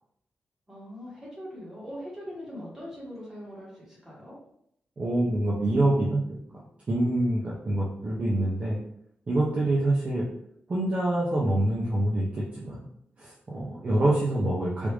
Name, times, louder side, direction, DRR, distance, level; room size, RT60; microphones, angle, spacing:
voice 1, 0.7-4.3, equal, 10° right, -6 dB, 1.2 m, -41 dB
voice 2, 5.0-6.6 6.9-8.8 9.3-10.3 10.7-12.8 13.2-14.9, right 1 dB, 30° right, -6 dB, 0.5 m, -26 dB
3.3 x 2.5 x 3.1 m, 0.73 s
wide cardioid pair, 180°, 4 cm